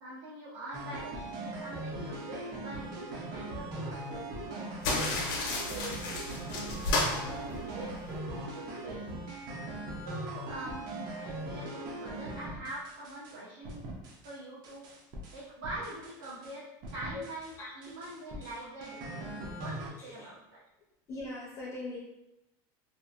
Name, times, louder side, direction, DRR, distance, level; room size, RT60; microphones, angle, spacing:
voice 1, 0.0-5.3 5.7-6.2 6.7-9.1 10.0-13.9 14.2-14.9 15.3-20.6, right 2 dB, 85° right, -8 dB, 0.7 m, -44 dB
sound 1, 0.7-13.4 13.6-14.4 14.6-16.5 16.8-17.5 17.8-19.9, right 1 dB, 35° right, 0.5 m, -40 dB
sound 2, 4.8-8.2, left 2 dB, 80° left, 0.7 m, -33 dB
voice 2, 20.0-20.3 21.1-22.0, left 2 dB, 25° left, -4 dB, 0.5 m, -40 dB
2.7 x 2.3 x 2.4 m, 0.91 s
cardioid pair, 165°, 11 cm